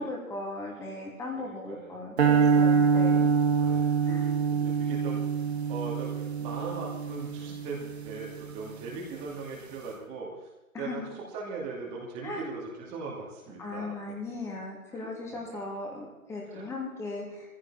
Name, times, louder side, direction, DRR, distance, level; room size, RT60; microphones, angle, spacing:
voice 1, 0.0-3.3 4.1-4.3 10.7-11.1 12.2-12.5 13.6-17.5, left 2 dB, 5° left, -2 dB, 2.8 m, -37 dB
voice 2, 1.4-2.0 3.0-3.1 3.6-5.4 5.7-10.5 10.8-14.0 14.9-15.4 16.5-16.6, right 4 dB, 15° right, -3 dB, 2.6 m, -40 dB
sound 1, 2.2-8.5, right 6 dB, 50° right, 1.9 m, -25 dB
20.0 x 15.5 x 4.3 m, 1.0 s
figure-of-eight pair, 150°, 42 cm